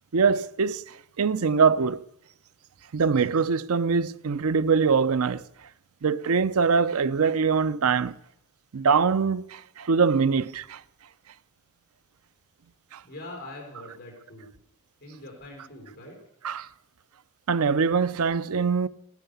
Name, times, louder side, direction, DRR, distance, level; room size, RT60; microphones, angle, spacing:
voice 1, 0.1-2.0 2.9-5.4 6.0-8.1 8.7-10.8 12.9-13.0 16.4-16.7 17.5-18.9, right 5 dB, 80° right, 0.6 m, -23 dB
voice 2, 13.1-14.6 15.0-16.2, left 1 dB, 45° left, 4.5 m, -43 dB
16.5 x 13.0 x 6.9 m
head